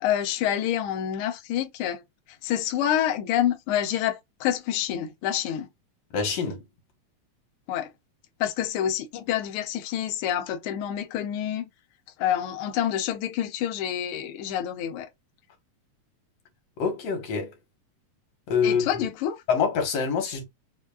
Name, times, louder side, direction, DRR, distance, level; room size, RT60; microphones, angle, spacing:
voice 1, 0.0-2.0 2.4-5.7 7.7-7.9 8.4-11.7 12.2-15.1 18.6-19.3, left 10 dB, 90° left, 1.2 m, -27 dB
voice 2, 6.1-6.6 16.8-17.6 18.5-19.1 19.5-20.4, left 6 dB, 65° left, 2.2 m, -25 dB
5.2 x 2.3 x 2.3 m
omnidirectional pair, 3.4 m